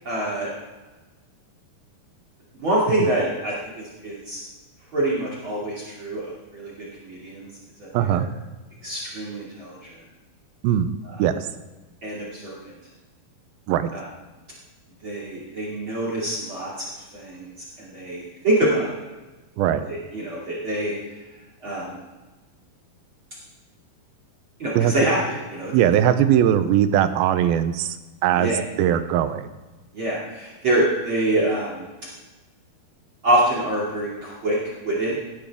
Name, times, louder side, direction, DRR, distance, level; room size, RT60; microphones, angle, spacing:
voice 1, 0.0-0.5 2.6-4.4 4.9-6.2 6.5-6.7 7.0-7.5 7.8-8.2 8.8-9.8 11.0-11.2 12.0-12.6 13.9-14.0 15.0-16.7 17.1-18.8 19.9-20.9 21.6-22.0 24.6-25.7 28.4-28.6 29.9-31.8 33.2-34.6 34.8-35.2, right 1 dB, 35° right, -5 dB, 3.0 m, -25 dB
voice 2, 7.9-8.3 10.6-10.9 11.2-11.5 13.7-13.9 19.6-19.9 24.8-24.9 25.7-28.0 28.2-28.5 28.8-29.5, right 10 dB, 85° right, 11 dB, 2.5 m, -20 dB
18.0 x 10.5 x 3.5 m, 1.2 s
omnidirectional pair, 4.3 m